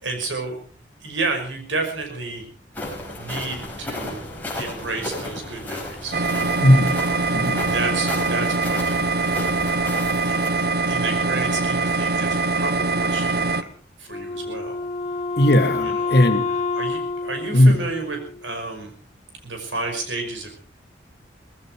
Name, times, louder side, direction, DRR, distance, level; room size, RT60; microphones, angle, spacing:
voice 1, 0.0-0.6 1.0-2.4 3.2-4.2 4.6-6.2 6.9-7.3 7.6-8.8 10.2-13.7 14.0-14.8 15.8-16.1 16.7-18.9 19.4-20.5, right 3 dB, 90° right, 4 dB, 5.7 m, -31 dB
sound 1, 2.7-10.5, left 1 dB, 10° left, 5.4 m, -34 dB
sound 2, 6.1-13.6, right 3 dB, 55° right, 0.9 m, -23 dB
voice 2, 6.6-7.0 7.3-7.6 15.4-16.5 17.5-17.8, left 1 dB, 60° left, 6 dB, 2.3 m, -16 dB
Wind instrument woodwind instrument, 14.1-18.6, left 4 dB, 35° left, 2.2 m, -28 dB
19.0 x 16.0 x 4.7 m, 0.42 s
head